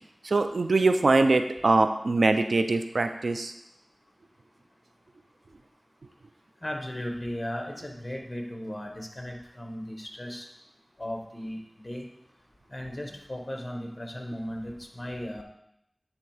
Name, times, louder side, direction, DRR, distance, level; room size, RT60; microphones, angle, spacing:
voice 1, 0.2-3.5, right 3 dB, 85° right, 8 dB, 0.4 m, -23 dB
voice 2, 6.6-10.5 11.0-12.1 12.7-15.4, equal, 30° left, 2 dB, 1.4 m, -36 dB
9.4 x 3.6 x 4.9 m, 0.78 s
wide cardioid pair, 45°, 0 cm